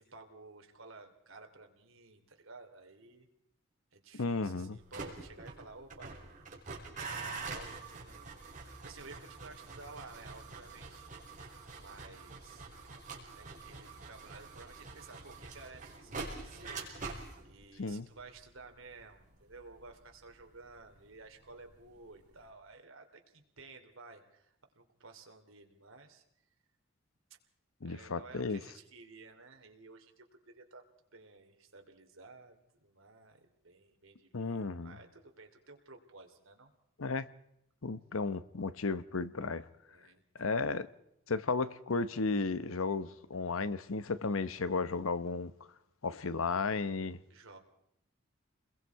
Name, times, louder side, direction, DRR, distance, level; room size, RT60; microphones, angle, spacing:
voice 1, 0.0-3.3 3.9-6.2 6.9-8.4 8.8-11.1 11.8-12.7 13.3-16.9 17.4-26.2 27.8-36.7 39.6-40.6 47.3-47.6, right 3 dB, 80° right, 2.9 m, -54 dB
voice 2, 4.1-4.8 17.8-18.1 27.8-28.6 34.3-34.9 37.0-37.3 37.8-39.6 40.4-40.9 41.3-45.5 46.0-47.2, left 4 dB, 85° left, 0.9 m, -34 dB
sound 1, 4.8-21.8 22.0-22.5, right 3 dB, 40° right, 4.8 m, -46 dB
29.0 x 21.5 x 4.7 m
head